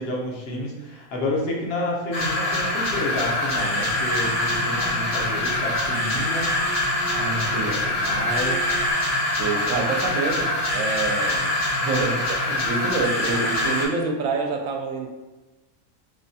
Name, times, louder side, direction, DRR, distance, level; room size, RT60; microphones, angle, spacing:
voice 1, 0.0-6.6 7.1-8.6, left 1 dB, 55° left, -2 dB, 0.8 m, -30 dB
sound 1, 2.1-13.8, left 1 dB, 75° left, 1.2 m, -24 dB
Singing, 3.9-8.9, right 2 dB, 45° right, 0.9 m, -34 dB
voice 2, 9.4-11.5 11.8-15.1, right 3 dB, 75° right, 3 dB, 0.9 m, -27 dB
4.8 x 2.2 x 2.7 m, 1.1 s
omnidirectional pair, 1.5 m